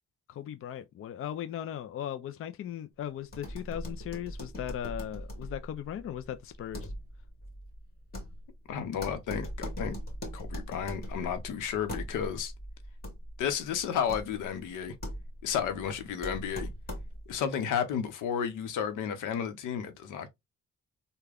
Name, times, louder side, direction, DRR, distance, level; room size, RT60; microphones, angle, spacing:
voice 1, 0.3-6.9, left 10 dB, 45° left, 0.5 m, -38 dB
sound 1, 3.3-17.4, equal, 30° left, 1.9 m, -41 dB
voice 2, 8.7-10.0 10.3-12.5 13.4-15.0 15.4-16.7 17.3-20.3, left 8 dB, 85° left, 0.8 m, -32 dB
3.5 x 2.2 x 3.3 m
cardioid pair, 90°, 30 cm